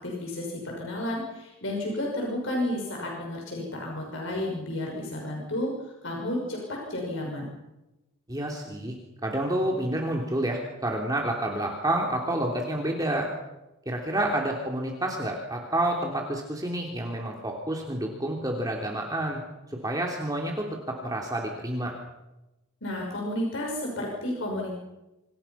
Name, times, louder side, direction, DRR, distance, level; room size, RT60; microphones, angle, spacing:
voice 1, 0.0-7.5 22.8-24.7, left 1 dB, 60° left, -1 dB, 6.0 m, -32 dB
voice 2, 8.3-8.9 9.2-13.3 13.8-19.4 19.7-21.9, right 1 dB, 20° right, 0 dB, 3.2 m, -29 dB
28.5 x 26.0 x 5.8 m, 1.0 s
head